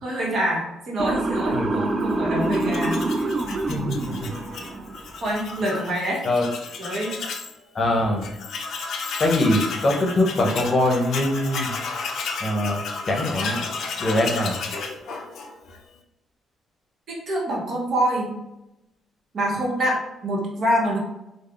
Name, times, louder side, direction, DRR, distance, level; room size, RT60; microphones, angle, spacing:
voice 1, 0.0-3.0 5.2-6.2 6.8-7.1 17.1-18.3 19.3-21.0, equal, 60° right, -2 dB, 0.9 m, -25 dB
Motor vehicle (road) / Siren, 1.0-5.1, right 2 dB, 40° right, 0.3 m, -26 dB
Tools, 2.4-7.5 7.9-8.0 8.2-15.8, left 4 dB, 70° left, 0.4 m, -33 dB
voice 2, 3.7-4.3 6.2-6.5 7.7-8.3 9.2-11.7 12.4-12.8 13.1-13.6 14.0-14.6, left 1 dB, 40° left, 0 dB, 0.7 m, -22 dB
3.3 x 2.0 x 2.4 m, 0.91 s
cardioid pair, 90°, 0 cm